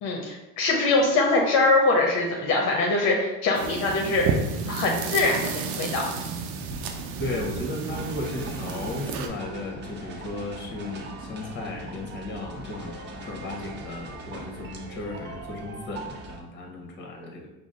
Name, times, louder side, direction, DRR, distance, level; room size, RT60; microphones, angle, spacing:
voice 1, 0.0-4.4 4.7-6.0, left 2 dB, 65° left, 0 dB, 0.7 m, -23 dB
sound 1, 3.5-9.3, right 5 dB, 75° right, 0.6 m, -31 dB
voice 2, 7.2-12.9 13.2-17.5, left 2 dB, 40° left, 2 dB, 1.0 m, -35 dB
sound 2, 7.9-16.4, right 2 dB, 40° right, 0.7 m, -40 dB
4.9 x 2.0 x 3.8 m, 1.0 s
cardioid pair, 120°, 29 cm